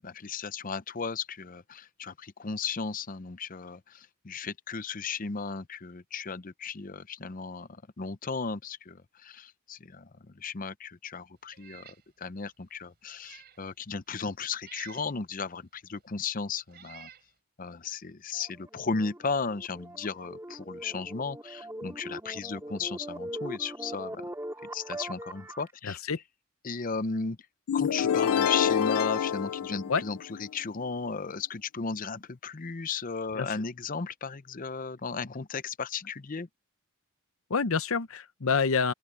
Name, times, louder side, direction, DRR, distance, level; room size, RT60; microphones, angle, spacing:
voice 1, 0.0-7.7 8.0-10.1 10.4-11.9 12.2-17.1 17.6-24.2 24.7-26.0 26.6-27.4 27.7-36.5, left 5 dB, 40° left, 0.6 m, -35 dB
Meow, 11.5-12.0 12.5-12.6 13.1-13.6 14.6-15.1 16.0-16.1 16.7-17.3, right 10 dB, 45° right, 3.6 m, -50 dB
sound 1, 18.4-25.7, right 1 dB, 10° right, 4.7 m, -41 dB
voice 2, 25.8-26.2 29.9-30.0 33.3-33.6 37.5-38.9, left 5 dB, 70° left, 0.8 m, -27 dB
sound 2, 27.7-30.5, left 8 dB, 90° left, 0.4 m, -27 dB
open air
head